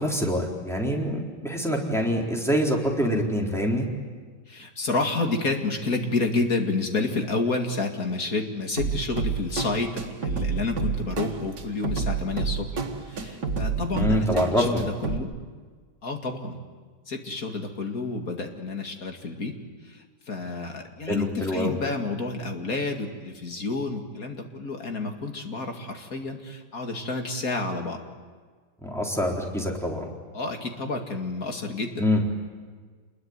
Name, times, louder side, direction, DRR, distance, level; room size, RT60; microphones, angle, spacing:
voice 1, 0.0-3.9 13.9-14.8 21.1-21.7 28.8-30.1 32.0-32.2, equal, ahead, -1 dB, 3.9 m, -25 dB
voice 2, 4.5-12.7 13.0-15.3 16.0-16.6 17.1-19.5 19.8-28.0 30.3-32.0, left 3 dB, 55° left, 3 dB, 2.7 m, -29 dB
sound 1, 8.8-15.2, right 5 dB, 75° right, 2.3 m, -30 dB
27.5 x 21.5 x 9.7 m, 1.5 s
omnidirectional pair, 1.8 m